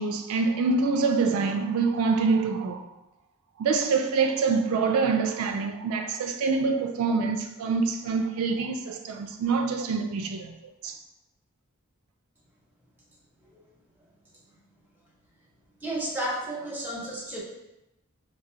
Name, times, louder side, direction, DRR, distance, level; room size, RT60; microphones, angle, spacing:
voice 1, 0.0-2.8 3.6-10.5 10.8-11.0, right 4 dB, 80° right, 0.3 m, -25 dB
voice 2, 15.8-17.4, right 1 dB, 10° right, 0.7 m, -32 dB
4.6 x 2.1 x 2.7 m
head